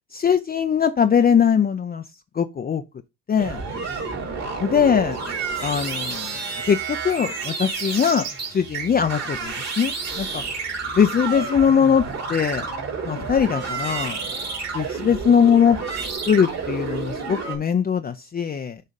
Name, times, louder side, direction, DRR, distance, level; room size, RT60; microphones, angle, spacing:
voice 1, 0.1-2.0 2.3-2.8 3.3-3.6 4.6-5.2 5.6-6.4 6.7-10.4 10.9-12.7 13.0-14.2 14.7-15.8 16.3-18.8, left 7 dB, 30° left, 0.5 m, -21 dB
sound 1, 3.4-17.6, right 4 dB, 60° right, 3.1 m, -30 dB
6.6 x 3.6 x 5.2 m
cardioid pair, 90°, 30 cm